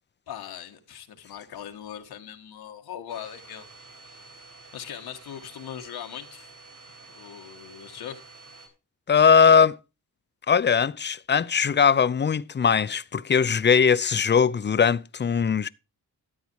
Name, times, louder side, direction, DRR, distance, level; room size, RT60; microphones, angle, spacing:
voice 1, 0.3-3.7 4.0-4.3 4.7-6.5 7.1-8.2, left 9 dB, 90° left, 1.7 m, -40 dB
Domestic sounds home sounds, 3.1-8.7, right 3 dB, 60° right, 5.7 m, -49 dB
voice 2, 9.1-9.8 10.5-15.7, left 6 dB, 30° left, 0.6 m, -20 dB
13.5 x 8.4 x 4.6 m
cardioid pair, 85°, 37 cm